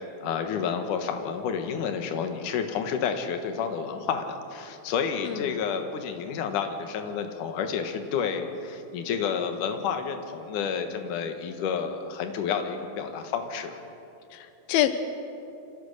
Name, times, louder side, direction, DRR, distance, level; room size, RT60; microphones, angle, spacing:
voice 1, 0.0-13.8, left 6 dB, 65° left, 6 dB, 2.7 m, -30 dB
voice 2, 5.2-5.6 14.3-14.9, left 13 dB, 85° left, 10 dB, 2.7 m, -27 dB
27.0 x 16.5 x 6.7 m, 2.8 s
omnidirectional pair, 4.2 m